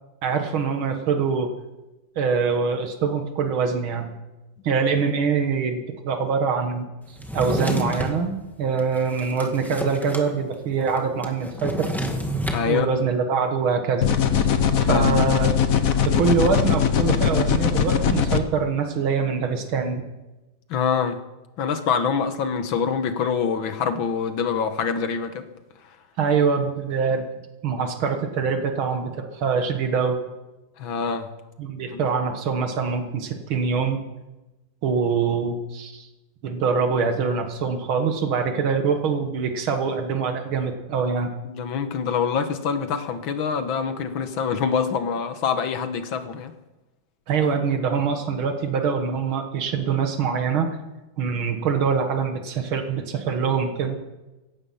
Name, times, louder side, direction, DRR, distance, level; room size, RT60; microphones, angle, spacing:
voice 1, 0.2-1.5 2.2-4.1 4.6-6.9 7.3-11.9 12.7-14.1 14.4-14.5 14.8-15.5 16.0-20.0 26.2-27.3 27.6-30.2 31.6-34.0 34.8-36.1 36.4-41.3 47.3-50.7 51.2-54.0, right 5 dB, 85° right, 6 dB, 2.3 m, -24 dB
Drawer open or close, 7.2-8.2 8.8-10.3 10.5-10.6 10.9-12.7, equal, ahead, 1.3 m, -29 dB
voice 2, 12.5-12.9 14.8-15.2 20.7-21.2 21.6-25.5 30.8-31.3 31.8-32.0 41.4-46.5, left 6 dB, 75° left, 9 dB, 2.0 m, -25 dB
sound 1, 14.0-18.4, left 8 dB, 50° left, 1.3 m, -20 dB
16.0 x 15.5 x 5.7 m, 1.1 s
omnidirectional pair, 2.2 m